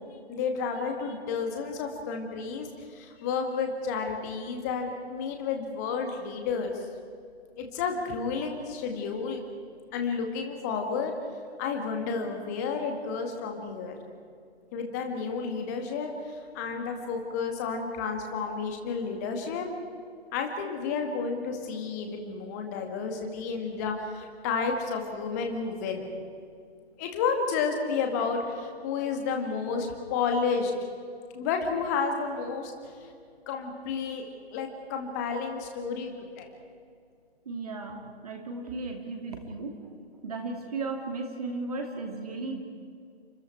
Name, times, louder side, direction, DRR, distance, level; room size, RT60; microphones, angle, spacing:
voice 1, 0.3-6.8 7.6-9.4 9.9-11.1 11.6-14.0 14.7-19.7 20.3-26.1 27.0-30.7 31.3-32.7 33.0-33.1 33.5-36.5, left 5 dB, 15° left, 3 dB, 2.0 m, -31 dB
voice 2, 37.5-39.9 40.2-42.6, right 3 dB, 35° right, 3 dB, 2.6 m, -35 dB
29.0 x 25.0 x 4.6 m, 2.3 s
figure-of-eight pair, 150°, 32 cm